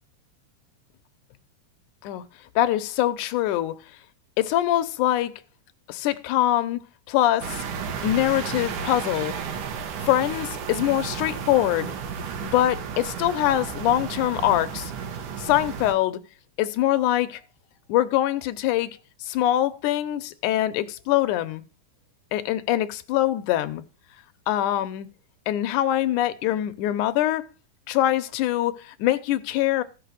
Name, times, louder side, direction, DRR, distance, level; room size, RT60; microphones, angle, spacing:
voice 1, 2.6-3.8 4.4-5.3 5.9-6.8 7.1-7.6 8.0-9.4 10.1-11.9 12.5-14.9 15.4-16.2 16.6-17.4 17.9-18.9 19.2-21.6 22.3-23.8 24.5-25.1 25.5-27.5 27.9-29.8, left 13 dB, 75° left, 2.2 m, -23 dB
sound 1, 7.4-15.9, right 6 dB, 75° right, 2.7 m, -33 dB
15.0 x 5.9 x 6.3 m
omnidirectional pair, 3.8 m